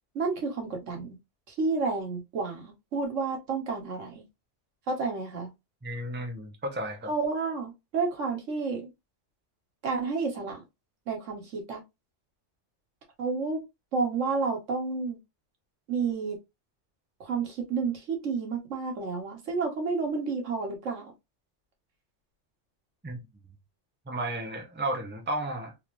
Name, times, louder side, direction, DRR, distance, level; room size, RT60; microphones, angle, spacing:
voice 1, 0.1-1.2 1.5-4.2 4.9-5.5 7.1-8.9 9.8-10.6 11.1-11.8 13.2-13.6 13.9-15.2 15.9-16.4 17.2-21.1, right 4 dB, 85° right, 1.5 m, -30 dB
voice 2, 5.8-7.1 23.0-23.2 24.1-25.7, right 1 dB, 10° right, 0.7 m, -33 dB
3.7 x 2.6 x 3.0 m
omnidirectional pair, 1.2 m